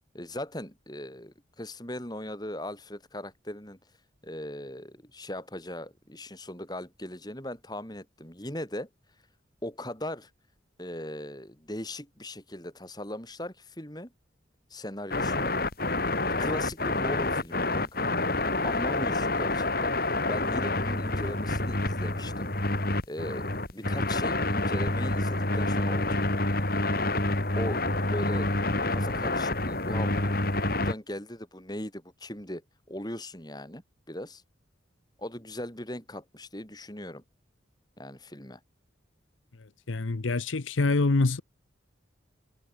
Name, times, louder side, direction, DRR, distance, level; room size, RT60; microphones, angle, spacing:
voice 1, 0.1-3.8 4.2-8.9 9.6-10.3 10.8-14.1 14.7-15.6 16.4-18.1 18.6-22.5 23.1-26.4 27.6-28.5 28.9-30.4 30.7-32.6 32.9-33.8 34.1-34.4 35.2-37.2 38.0-38.6, left 1 dB, 20° left, 5.5 m, -39 dB
sound 1, 15.1-30.9, left 2 dB, 50° left, 3.5 m, -28 dB
voice 2, 39.9-41.4, left 3 dB, 85° left, 0.9 m, -25 dB
head